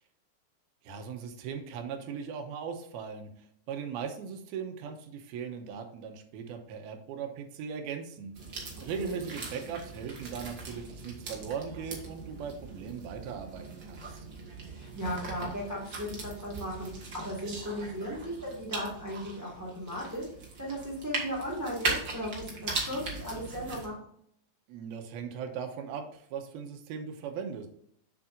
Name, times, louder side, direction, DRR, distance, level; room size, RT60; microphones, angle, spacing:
voice 1, 0.8-3.3 3.7-8.3 8.8-14.1 24.7-27.7, right 6 dB, 90° right, 5 dB, 2.8 m, -38 dB
sound 1, 8.3-23.9, right 3 dB, 45° right, 1.6 m, -39 dB
voice 2, 14.7-20.3 20.6-23.9, equal, 25° right, -4 dB, 0.3 m, -36 dB
7.3 x 7.2 x 2.6 m, 0.67 s
omnidirectional pair, 4.3 m